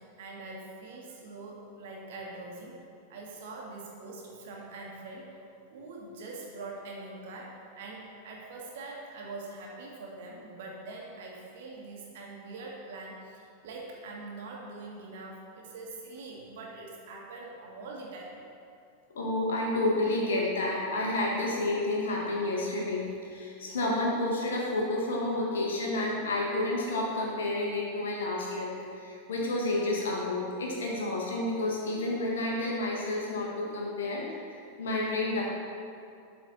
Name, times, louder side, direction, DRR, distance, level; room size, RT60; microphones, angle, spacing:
voice 1, 0.0-2.8 3.1-5.4 5.7-18.3, right 2 dB, 55° right, -2 dB, 1.6 m, -43 dB
voice 2, 19.1-34.4 34.8-35.4, left 2 dB, 65° left, -3 dB, 1.6 m, -30 dB
12.0 x 4.3 x 4.2 m, 2.4 s
figure-of-eight pair, 90°, 0 cm